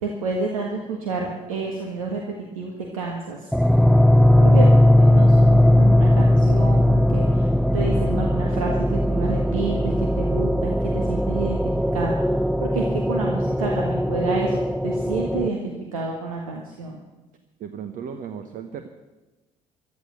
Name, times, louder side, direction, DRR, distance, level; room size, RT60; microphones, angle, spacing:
voice 1, 0.0-3.5 4.4-14.5 14.8-17.0, right 3 dB, 75° right, 1 dB, 1.7 m, -30 dB
sound 1, 3.5-15.5, left 1 dB, ahead, 0.5 m, -18 dB
voice 2, 4.2-4.7 17.6-18.9, right 7 dB, 50° right, 8 dB, 1.1 m, -36 dB
14.5 x 11.5 x 8.1 m, 1.1 s
figure-of-eight pair, 50°, 17 cm